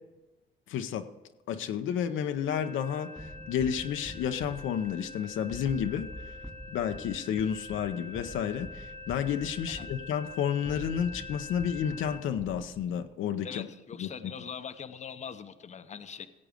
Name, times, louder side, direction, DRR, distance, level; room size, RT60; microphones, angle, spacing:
voice 1, 0.7-1.1 1.5-6.3 6.7-13.7 14.0-14.1, left 8 dB, 80° left, 8 dB, 0.8 m, -31 dB
sound 1, 2.5-12.2, left 3 dB, 40° right, 2.4 m, -45 dB
sound 2, 3.2-13.1, equal, ahead, 0.8 m, -47 dB
voice 2, 13.4-16.3, left 7 dB, 35° left, 10 dB, 0.7 m, -42 dB
16.5 x 8.0 x 5.1 m, 1.1 s
cardioid pair, 90°, 20 cm